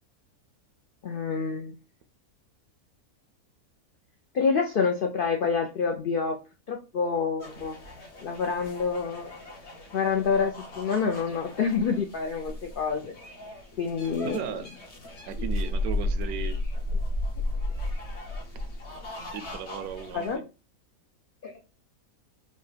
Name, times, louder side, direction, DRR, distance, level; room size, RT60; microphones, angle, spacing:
voice 1, 1.0-1.8 4.3-6.4 6.7-7.8 8.2-9.4 9.9-13.2 13.8-14.4 20.1-20.4 21.4-21.5, left 5 dB, 75° left, 3 dB, 0.5 m, -27 dB
sound 1, 7.4-20.3, left 1 dB, 50° left, 1.3 m, -34 dB
voice 2, 14.2-14.7 15.3-16.6 19.3-20.4, right 7 dB, 80° right, 10 dB, 1.0 m, -36 dB
5.2 x 2.2 x 3.2 m, 0.31 s
omnidirectional pair, 1.6 m